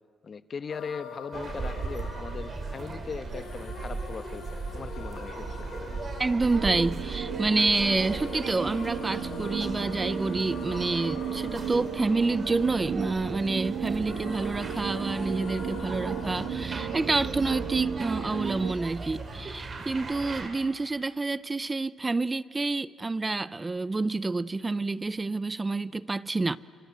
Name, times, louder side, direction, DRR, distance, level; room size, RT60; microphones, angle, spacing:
voice 1, 0.2-4.5 4.7-5.7, left 5 dB, 45° left, 1.1 m, -39 dB
sound 1, 0.7-13.6 14.0-16.5, left 5 dB, 85° left, 3.4 m, -44 dB
sound 2, 1.3-20.5, right 3 dB, 40° right, 3.5 m, -38 dB
voice 2, 6.2-26.6, right 3 dB, 20° right, 0.6 m, -28 dB
sound 3, 6.5-18.7, right 8 dB, 90° right, 1.3 m, -35 dB
27.5 x 26.5 x 7.9 m
cardioid pair, 90°, 0 cm